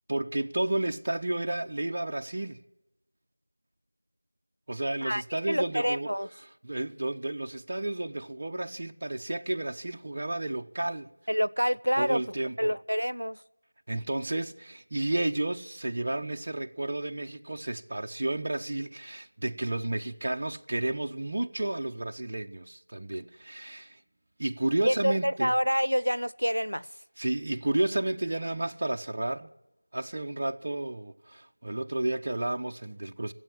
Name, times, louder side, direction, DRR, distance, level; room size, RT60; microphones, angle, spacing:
voice 1, 0.1-2.6 4.7-6.1 6.6-11.1 12.0-12.7 13.9-24.0 24.4-25.6 27.2-29.5 29.9-33.3, right 2 dB, 25° right, 0.4 m, -31 dB
voice 2, 5.0-6.3 11.3-12.2 12.6-13.4 24.8-26.9, equal, 90° right, 0.4 m, -27 dB
15.0 x 7.6 x 9.8 m
figure-of-eight pair, 175°, 0 cm